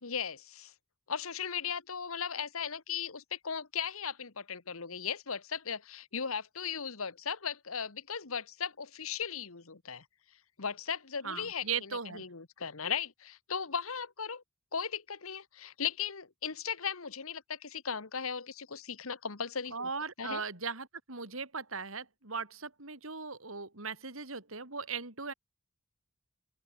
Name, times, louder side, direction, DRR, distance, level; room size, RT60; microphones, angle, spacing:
voice 1, 0.0-0.7 1.1-10.0 10.6-14.4 14.7-19.9 20.2-20.4, left 7 dB, 85° left, 1.6 m, -37 dB
voice 2, 11.2-12.2 19.7-25.3, right 5 dB, 80° right, 4.3 m, -38 dB
open air
head